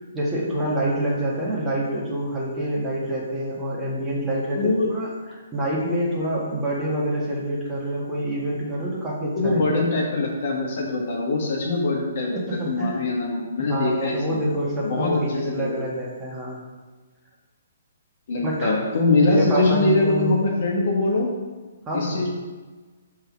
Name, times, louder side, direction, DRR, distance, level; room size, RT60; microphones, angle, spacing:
voice 1, 0.1-5.1 5.5-9.9 12.3-13.0 13.7-16.6 18.4-18.8 19.2-20.3 21.9-22.2, right 1 dB, 15° right, -5 dB, 1.7 m, -26 dB
voice 2, 4.5-4.9 9.3-14.2 14.8-15.8 18.3-21.3 21.9-22.3, left 2 dB, 50° left, -1 dB, 1.4 m, -23 dB
5.5 x 3.8 x 5.9 m, 1.3 s
figure-of-eight pair, 130°, 0 cm